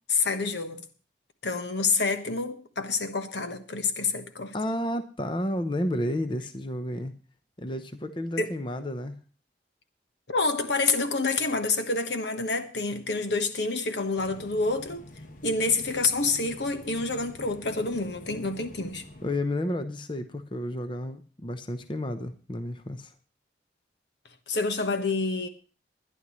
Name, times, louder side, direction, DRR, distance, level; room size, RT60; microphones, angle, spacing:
voice 1, 0.1-0.9 1.4-4.5 8.4-8.5 10.3-15.0 15.4-19.0 24.5-25.5, left 3 dB, 75° left, 1.3 m, -28 dB
voice 2, 4.5-7.1 7.6-9.2 19.2-23.1, left 1 dB, 25° left, 0.8 m, -31 dB
sound 1, 14.2-19.4, left 1 dB, 45° left, 1.2 m, -47 dB
21.0 x 11.0 x 3.1 m
head